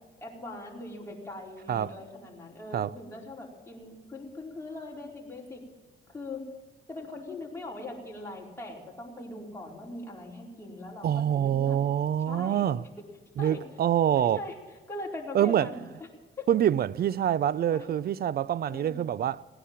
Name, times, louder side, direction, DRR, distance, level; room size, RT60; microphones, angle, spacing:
voice 1, 0.2-5.6 6.1-6.5 6.9-11.8 12.3-12.7 13.4-13.6 14.2-14.6 14.9-16.1 16.4-16.5 17.6-17.9 18.7-19.0, left 2 dB, 15° left, 4.6 m, -41 dB
voice 2, 11.0-12.8 13.4-14.4 15.3-15.7 16.5-19.4, right 10 dB, 50° right, 0.5 m, -26 dB
18.0 x 10.0 x 7.7 m
cardioid pair, 90°, 20 cm